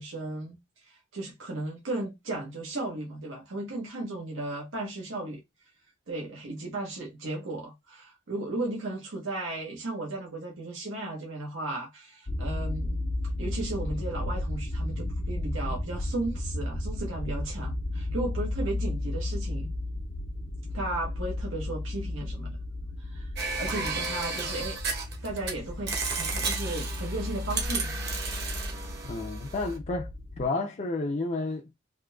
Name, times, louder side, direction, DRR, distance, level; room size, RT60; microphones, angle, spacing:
voice 1, 0.0-5.4 6.1-13.0 13.4-19.7 20.7-22.6 23.0-23.3 23.6-24.8 25.2-27.9, right 2 dB, 80° right, 1.0 m, -35 dB
sound 1, 12.3-30.5, left 1 dB, 75° left, 0.8 m, -34 dB
sound 2, 23.4-25.5 25.9-29.8, right 4 dB, 60° right, 1.1 m, -33 dB
voice 2, 29.0-30.1 30.4-31.7, left 3 dB, 35° left, 0.4 m, -31 dB
3.7 x 2.7 x 2.3 m
head